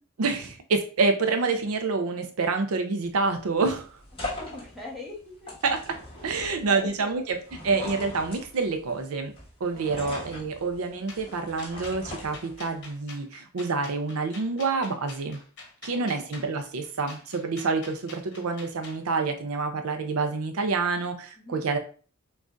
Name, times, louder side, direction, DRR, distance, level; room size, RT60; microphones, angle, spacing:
voice 1, 0.2-3.9 5.6-6.0 6.2-7.4 7.6-9.3 9.6-15.4 15.8-21.8, right 4 dB, 75° right, 6 dB, 0.5 m, -27 dB
sound 1, 3.0-12.9, left 1 dB, 25° left, 1.7 m, -41 dB
voice 2, 4.3-5.5 6.2-7.3 9.7-10.2 15.9-16.3 21.4-21.6, left 3 dB, ahead, -4 dB, 1.3 m, -42 dB
sound 2, 11.1-19.0, left 3 dB, 55° left, 1.1 m, -46 dB
6.1 x 2.4 x 2.5 m, 0.40 s
head